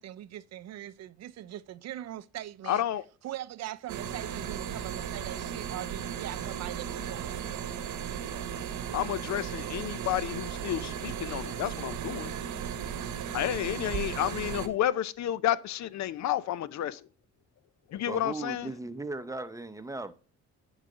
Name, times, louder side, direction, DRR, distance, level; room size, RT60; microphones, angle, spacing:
voice 1, 0.0-2.8 3.2-7.7, right 13 dB, 60° right, 0.4 m, -41 dB
voice 2, 2.7-3.0 8.9-12.3 13.3-17.0 17.9-18.7, left 12 dB, 65° left, 0.6 m, -31 dB
sound 1, 3.9-14.7, right 8 dB, 80° right, 1.0 m, -36 dB
voice 3, 18.1-20.1, right 2 dB, 10° right, 0.7 m, -37 dB
10.0 x 4.0 x 4.9 m
cardioid pair, 90°, 30 cm